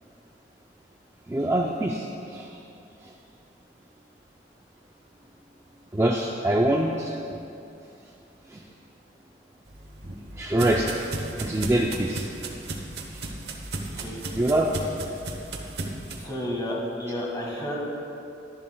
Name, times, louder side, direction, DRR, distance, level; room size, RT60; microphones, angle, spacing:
voice 1, 1.3-2.5 5.9-7.4 8.5-8.6 10.4-11.0 11.3-12.3 13.1-13.2 14.3-14.7, right 1 dB, 15° right, 0 dB, 0.3 m, -24 dB
sound 1, 9.7-16.2, right 2 dB, 60° right, 0.9 m, -35 dB
voice 2, 13.6-14.2 16.1-17.8, equal, 20° left, -3 dB, 1.5 m, -32 dB
12.0 x 11.0 x 2.3 m, 2.7 s
head